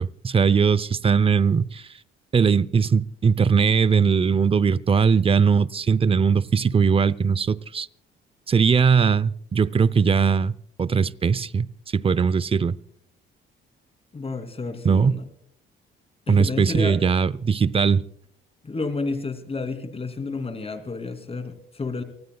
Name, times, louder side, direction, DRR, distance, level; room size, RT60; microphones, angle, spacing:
voice 1, 0.0-1.9 2.3-7.9 8.5-10.5 10.8-11.7 11.9-12.7 14.8-15.2 16.3-18.0, right 6 dB, 30° right, 0.6 m, -20 dB
voice 2, 14.1-15.2 16.3-17.0 18.6-22.0, left 3 dB, 30° left, 2.9 m, -31 dB
28.5 x 19.5 x 2.3 m
cardioid pair, 90°, 20 cm